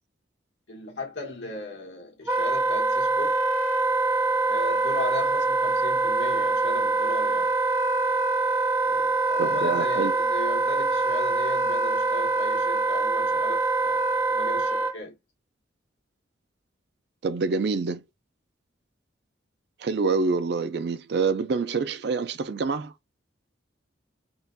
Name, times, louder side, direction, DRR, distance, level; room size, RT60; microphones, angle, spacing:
voice 1, 0.7-3.4 4.5-7.5 8.8-15.1, left 3 dB, 70° left, 1.5 m, -37 dB
Wind instrument woodwind instrument, 2.3-14.9, right 3 dB, 10° right, 0.6 m, -24 dB
voice 2, 9.4-10.1 17.2-18.0 19.8-22.9, right 4 dB, 60° right, 0.4 m, -26 dB
3.7 x 2.3 x 2.6 m
head